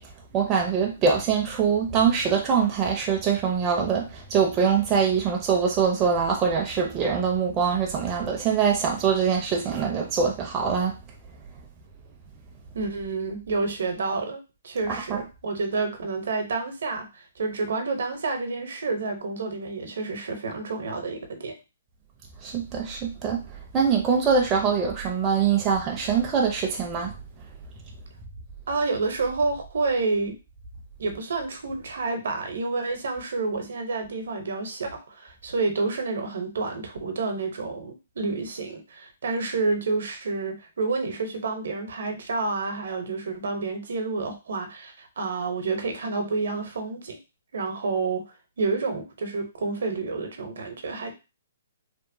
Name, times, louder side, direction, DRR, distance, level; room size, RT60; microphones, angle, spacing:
voice 1, 0.3-11.0 15.1-15.2 22.4-23.4 23.7-27.1, right 6 dB, 20° right, 0 dB, 0.5 m, -23 dB
voice 2, 12.7-21.5 28.7-30.3 31.0-47.2 47.5-48.2 48.6-51.1, right 3 dB, 70° right, 5 dB, 0.7 m, -29 dB
2.9 x 2.0 x 2.6 m, 0.28 s
hypercardioid pair, 160°, 0 cm